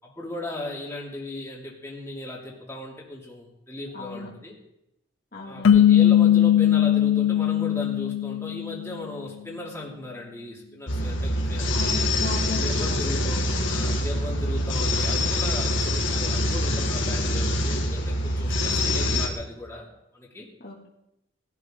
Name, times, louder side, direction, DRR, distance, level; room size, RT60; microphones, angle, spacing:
voice 1, 0.0-4.5 5.4-11.8 12.5-19.9 20.1-20.5, left 2 dB, 10° left, -5 dB, 3.0 m, -37 dB
voice 2, 3.9-4.3 5.3-5.8 11.7-13.9 18.7-19.2 20.6-20.9, left 2 dB, 45° left, -3 dB, 2.7 m, -37 dB
sound 1, 5.6-9.0, left 10 dB, 80° left, 0.5 m, -19 dB
sound 2, 10.9-19.3, left 1 dB, 65° left, 2.1 m, -25 dB
20.5 x 12.0 x 4.0 m, 0.85 s
head